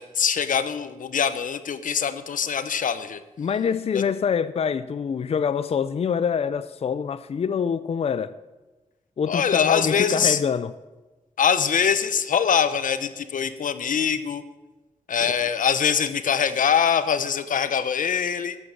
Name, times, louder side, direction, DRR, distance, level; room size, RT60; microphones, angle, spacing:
voice 1, 0.0-3.2 3.9-4.0 9.3-10.4 11.4-14.4 15.1-18.6, left 7 dB, 85° left, 0.9 m, -23 dB
voice 2, 3.4-8.3 9.2-10.7 15.2-15.3, left 7 dB, 50° left, 0.5 m, -25 dB
14.5 x 7.8 x 7.8 m
wide cardioid pair, 160°, 13 cm